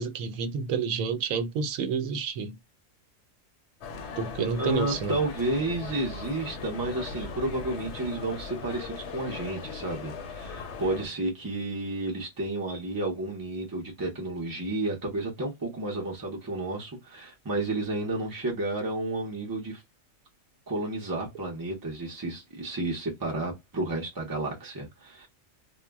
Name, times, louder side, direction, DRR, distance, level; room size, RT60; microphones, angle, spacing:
voice 1, 0.0-2.6 4.2-5.2, right 6 dB, 85° right, 1.0 m, -29 dB
sound 1, 3.8-11.1, left 5 dB, 70° left, 0.8 m, -39 dB
voice 2, 4.6-19.8 20.7-25.3, right 2 dB, 30° right, 0.3 m, -31 dB
2.2 x 2.0 x 3.4 m
omnidirectional pair, 1.4 m